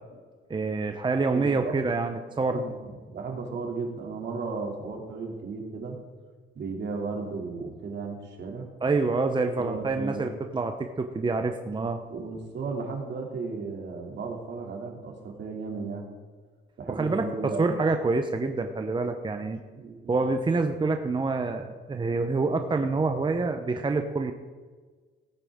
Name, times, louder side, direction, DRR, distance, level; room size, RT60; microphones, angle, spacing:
voice 1, 0.5-2.7 8.8-12.0 16.9-19.6 20.1-24.3, right 3 dB, 25° right, 6 dB, 0.8 m, -27 dB
voice 2, 1.3-1.8 2.4-6.0 6.5-8.7 9.5-10.3 12.1-16.0 16.8-17.7 19.8-20.1, right 4 dB, 60° right, 1 dB, 2.8 m, -35 dB
17.5 x 8.9 x 3.7 m, 1.4 s
cardioid pair, 90°, 20 cm